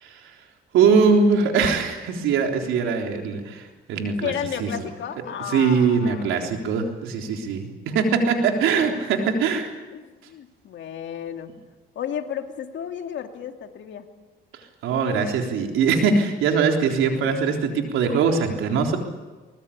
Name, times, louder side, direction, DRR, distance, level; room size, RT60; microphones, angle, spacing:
voice 1, 0.7-4.3 4.6-4.7 5.5-9.7 14.8-19.0, right 5 dB, 90° right, 3 dB, 3.7 m, -21 dB
voice 2, 4.2-6.5 8.9-9.0 9.9-11.6 12.0-14.1, left 9 dB, 70° left, 5 dB, 2.4 m, -33 dB
23.5 x 21.0 x 8.6 m, 1.2 s
cardioid pair, 90°, 20 cm